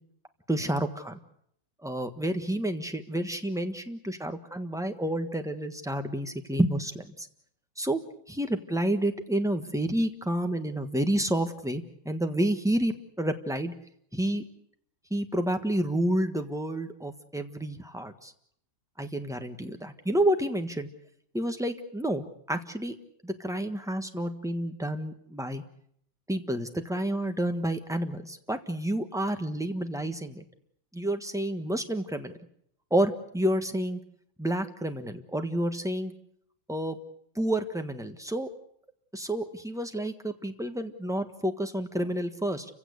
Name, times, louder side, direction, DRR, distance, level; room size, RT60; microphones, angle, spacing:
voice 1, 0.5-1.2 1.8-7.3 7.8-8.0 8.3-12.9 13.2-13.7 14.1-14.4 15.1-18.3 19.0-20.9 21.3-23.0 23.2-25.6 26.3-30.4 30.9-32.3 32.9-34.0 34.4-36.1 36.7-37.0 37.3-38.5 39.1-42.6, right 1 dB, ahead, 7 dB, 1.2 m, -29 dB
29.5 x 16.5 x 8.1 m, 0.70 s
omnidirectional pair, 2.0 m